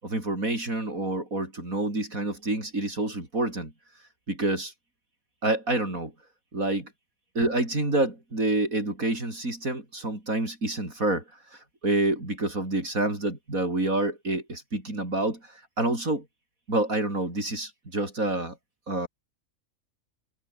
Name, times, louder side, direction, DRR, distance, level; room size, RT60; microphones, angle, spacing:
voice 1, 0.0-3.7 4.3-4.7 5.4-6.1 6.5-6.9 7.4-11.2 11.5-16.2 16.7-18.6 18.9-19.1, right 2 dB, 80° right, 7.2 m, -28 dB
omnidirectional pair, 1.4 m